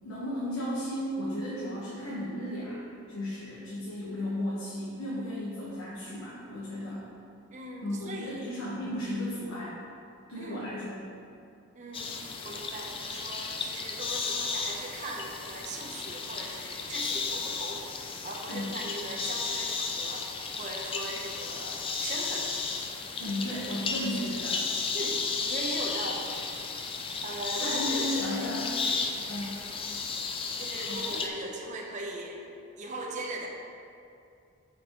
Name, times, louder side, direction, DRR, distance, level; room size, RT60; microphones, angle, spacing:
voice 1, 0.0-7.1 7.8-9.8 10.3-11.0 18.5-18.7 23.2-24.6 27.6-28.7 29.3-29.5 30.7-31.0, left 1 dB, 70° left, -8 dB, 1.3 m, -34 dB
voice 2, 7.5-8.5 10.4-10.7 11.7-17.8 18.2-20.3 20.6-22.5 24.9-26.3 27.2-28.5 28.8-29.0 30.6-32.5 32.8-33.5, right 2 dB, 35° right, -1 dB, 0.8 m, -39 dB
sound 1, 11.9-31.3, left 4 dB, 25° left, 0.4 m, -34 dB
8.8 x 5.2 x 3.1 m, 2.5 s
head